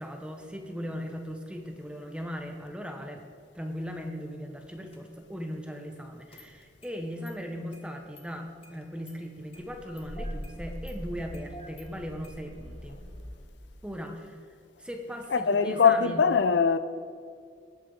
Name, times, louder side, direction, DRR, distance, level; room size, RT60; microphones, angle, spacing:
voice 1, 0.0-3.2 3.5-13.0 13.8-16.2, equal, 5° right, 0.8 m, -38 dB
Engine starting, 4.9-5.0 6.3-6.9 7.3-7.4 7.7-7.8 8.2-8.3 8.6-9.2 9.5-13.5, equal, 30° left, 1.3 m, -42 dB
voice 2, 15.3-16.8, left 6 dB, 65° left, 0.5 m, -22 dB
18.5 x 8.3 x 3.9 m
head